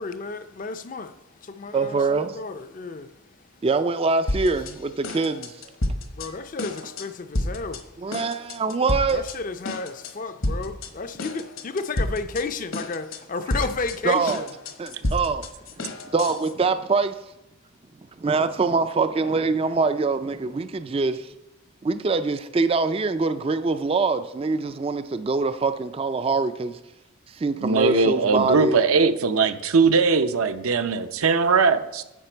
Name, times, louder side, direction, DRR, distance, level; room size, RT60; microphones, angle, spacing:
voice 1, 0.0-3.1 6.1-7.9 9.1-14.5, left 4 dB, 35° left, 0.4 m, -32 dB
voice 2, 1.7-2.4 3.6-5.6 8.0-9.2 14.0-14.5 14.8-15.5 16.1-17.2 18.2-21.3 21.8-26.8 27.3-28.8, right 4 dB, 25° right, 0.3 m, -24 dB
sound 1, 4.3-4.8 5.0-6.3 6.6-7.1 7.3-7.8 8.1-9.4 9.6-10.1 10.4-10.9 11.2-12.4 12.7-13.2 13.5-16.5, left 1 dB, 70° left, 1.1 m, -30 dB
voice 3, 27.6-32.0, right 4 dB, 75° right, 0.6 m, -20 dB
11.0 x 7.6 x 4.4 m
head